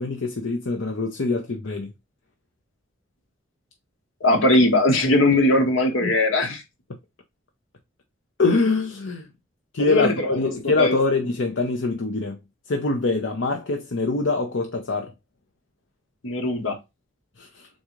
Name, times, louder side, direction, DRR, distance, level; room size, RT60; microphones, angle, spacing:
voice 1, 0.0-1.9 6.0-6.1 8.4-9.3 9.7-12.4 12.7-15.1 17.4-17.7, left 3 dB, 70° left, 0.7 m, -24 dB
voice 2, 4.2-6.6 9.8-10.5 10.8-10.9 16.2-16.8, left 1 dB, 85° left, 1.2 m, -20 dB
3.9 x 3.7 x 3.1 m
head